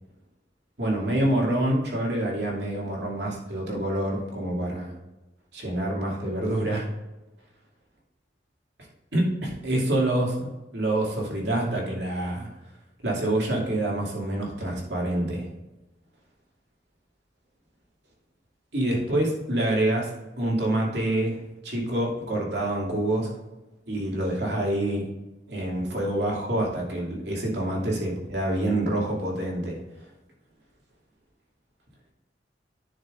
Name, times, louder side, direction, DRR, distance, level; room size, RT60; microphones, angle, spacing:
voice 1, 0.8-4.9 5.5-6.9 9.1-12.5 13.0-15.5 18.7-21.4 21.6-23.3 23.9-25.1 25.5-29.8, right 1 dB, 65° right, -2 dB, 2.6 m, -26 dB
11.0 x 6.3 x 2.6 m, 1.0 s
head